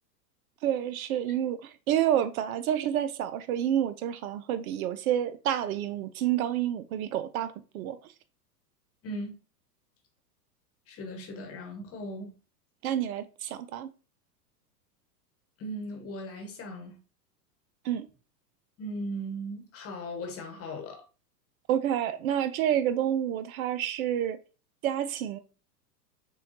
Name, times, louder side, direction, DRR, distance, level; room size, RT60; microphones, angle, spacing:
voice 1, 0.6-8.1 12.8-13.9 17.8-18.1 21.7-24.4 24.8-25.4, right 10 dB, 60° right, 0.5 m, -29 dB
voice 2, 9.0-9.4 10.9-12.3 15.6-17.0 18.8-21.0, equal, 30° left, 1.1 m, -38 dB
6.2 x 2.3 x 2.6 m
hypercardioid pair, 110°, 49 cm